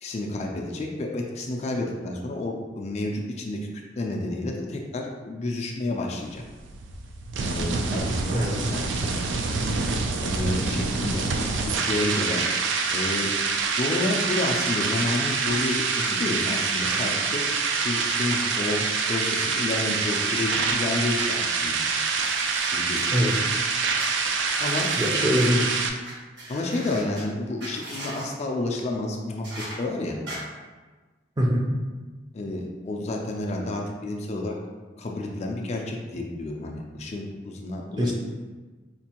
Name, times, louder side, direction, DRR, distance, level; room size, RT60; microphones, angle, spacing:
voice 1, 0.0-3.6 3.9-6.4 7.4-9.2 10.2-11.2 11.6-12.4 12.9-13.3 13.7-17.5 17.7-21.8 22.7-23.3 24.6-24.9 26.5-29.4 29.8-30.2 32.3-34.6 35.0-38.1, left 2 dB, 35° left, 0 dB, 0.3 m, -30 dB
sound 1, 6.2-25.9, right 4 dB, 80° right, 0.4 m, -26 dB
sound 2, 22.0-23.4 24.0-25.4 26.0-26.1 26.4-27.2 27.6-28.3 29.4-29.8 30.3-30.4, right 1 dB, 65° right, 1.0 m, -40 dB
voice 2, 25.0-25.8 31.4-31.7 38.0-38.1, equal, 25° right, -1 dB, 0.5 m, -23 dB
4.4 x 2.4 x 2.8 m, 1.3 s
head